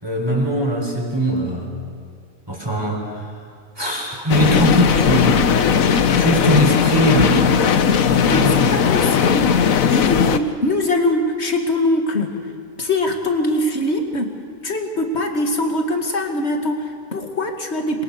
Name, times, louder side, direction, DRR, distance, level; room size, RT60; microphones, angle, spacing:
voice 1, 0.0-1.7 2.5-3.3 3.8-5.5 6.2-7.6 8.2-8.9, right 1 dB, 15° right, -1 dB, 4.5 m, -21 dB
sound 1, 4.3-10.4, left 7 dB, 70° left, 1.4 m, -17 dB
voice 2, 8.2-12.4 12.8-14.4 14.6-18.0, left 1 dB, 50° left, 4 dB, 2.5 m, -22 dB
28.0 x 22.5 x 6.8 m, 2.3 s
omnidirectional pair, 1.5 m